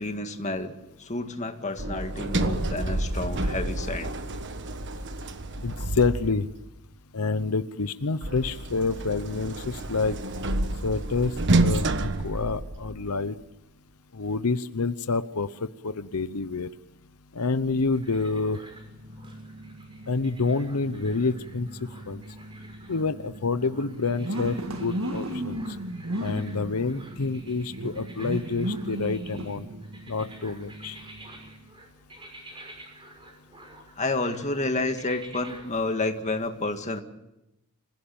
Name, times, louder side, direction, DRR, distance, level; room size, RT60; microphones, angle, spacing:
voice 1, 0.0-4.1 34.0-37.0, left 2 dB, 30° left, 6 dB, 2.0 m, -30 dB
Sliding door, 1.8-6.6 8.2-13.2, right 2 dB, 55° right, 1.4 m, -29 dB
voice 2, 5.6-6.5 7.1-10.2 10.8-13.4 14.1-15.5 15.8-16.7 17.3-18.6 20.1-22.2 22.9-25.8 26.2-29.7 30.1-31.0, left 4 dB, 85° left, 12 dB, 0.9 m, -28 dB
sound 1, 17.9-35.7, right 1 dB, 25° right, 5.8 m, -50 dB
sound 2, 18.4-31.7, right 1 dB, 70° right, 2.0 m, -37 dB
26.0 x 16.5 x 8.7 m, 0.90 s
head